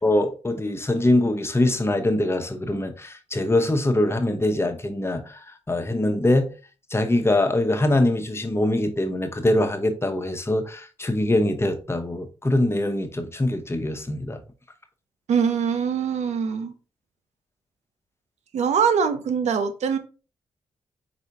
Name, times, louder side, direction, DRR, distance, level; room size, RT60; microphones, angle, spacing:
voice 1, 0.0-5.4 5.7-6.5 6.9-14.4, left 1 dB, 20° left, 0.8 m, -23 dB
voice 2, 15.3-16.7 18.5-20.0, right 6 dB, 75° right, 0.6 m, -23 dB
4.5 x 4.0 x 2.9 m
cardioid pair, 60°, 12 cm